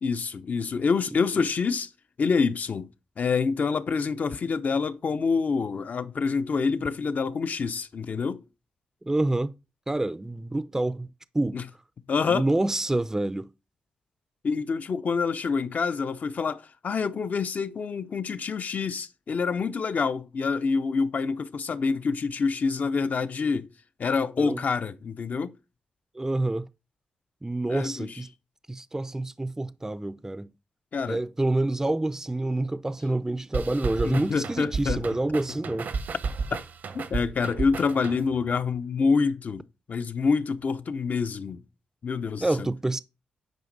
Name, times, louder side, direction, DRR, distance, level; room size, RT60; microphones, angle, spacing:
voice 1, 0.0-1.9 2.2-2.9 3.2-8.4 11.5-11.7 12.1-12.5 14.4-23.7 24.0-25.5 27.7-28.2 30.9-31.2 34.0-35.0 36.5-36.6 36.9-39.6 39.9-41.6 42.0-42.7, left 5 dB, 55° left, 0.7 m, -27 dB
voice 2, 9.0-9.5 9.9-11.1 11.3-11.6 12.3-13.5 24.4-24.6 26.1-26.7 27.4-28.3 28.7-30.5 31.1-35.9 42.4-43.0, right 2 dB, 15° right, 0.5 m, -27 dB
sound 1, 33.5-38.5, right 4 dB, 65° right, 1.0 m, -33 dB
9.2 x 5.0 x 4.0 m
supercardioid pair, 50°, 3 cm